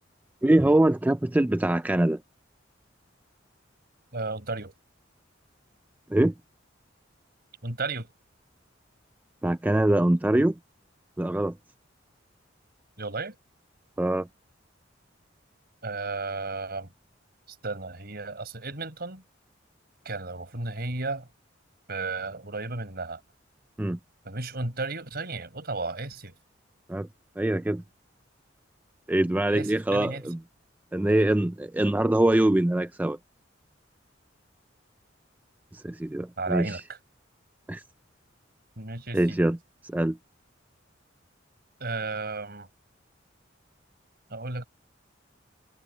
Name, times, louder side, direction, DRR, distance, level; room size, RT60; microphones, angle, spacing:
voice 1, 0.4-2.2 6.1-6.3 9.4-10.6 11.2-11.6 14.0-14.3 23.8-24.0 26.9-27.1 27.4-27.8 29.1-30.4 30.9-33.2 35.7-36.8 37.7-37.8 39.1-39.6 39.8-40.2, right 1 dB, 10° right, 0.3 m, -23 dB
voice 2, 4.1-4.7 7.6-8.1 13.0-13.4 15.8-16.9 17.5-19.2 20.1-21.3 21.9-23.2 24.2-26.3 29.4-30.3 36.4-36.8 38.8-39.4 41.8-42.7 44.3-44.7, right 3 dB, 55° right, 5.2 m, -34 dB
head